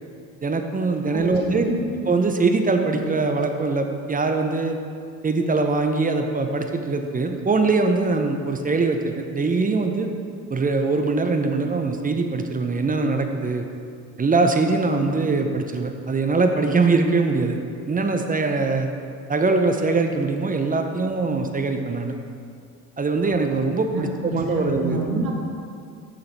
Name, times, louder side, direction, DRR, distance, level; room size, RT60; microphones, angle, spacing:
voice 1, 0.4-1.7 2.1-4.8 5.2-10.1 10.5-13.7 14.2-17.6 17.9-18.9 19.3-22.1 23.0-25.0, right 3 dB, 20° right, 5 dB, 0.7 m, -22 dB
voice 2, 1.1-1.8 23.9-25.3, right 2 dB, 45° right, -2 dB, 2.0 m, -28 dB
7.0 x 6.4 x 4.6 m, 2.4 s
hypercardioid pair, 65°, 47 cm